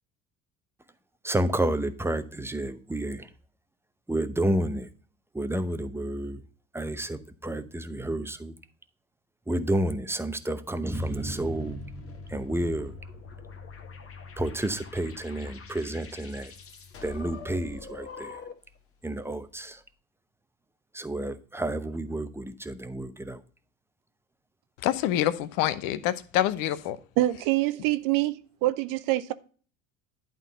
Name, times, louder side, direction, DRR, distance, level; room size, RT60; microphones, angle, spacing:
voice 1, 1.2-3.3 4.1-4.9 5.3-6.4 6.7-8.5 9.5-12.9 14.4-16.5 17.0-18.4 19.0-19.8 20.9-23.4, right 1 dB, 5° right, 0.8 m, -30 dB
sound 1, 10.9-18.8, left 5 dB, 35° left, 1.6 m, -44 dB
voice 2, 24.8-27.0, left 12 dB, 55° left, 0.8 m, -26 dB
voice 3, 27.2-29.3, right 16 dB, 55° right, 0.7 m, -25 dB
11.0 x 3.8 x 5.1 m
figure-of-eight pair, 60°, 40 cm